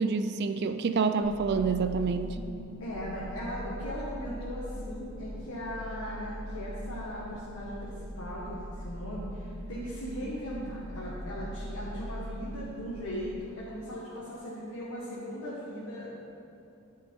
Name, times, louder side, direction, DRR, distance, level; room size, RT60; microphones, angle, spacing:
voice 1, 0.0-2.4, right 4 dB, 50° right, 9 dB, 0.3 m, -27 dB
sound 1, 1.2-13.4, equal, 70° right, 1.4 m, -41 dB
voice 2, 2.8-16.3, equal, 75° left, -8 dB, 1.6 m, -38 dB
11.0 x 5.6 x 4.6 m, 2.7 s
head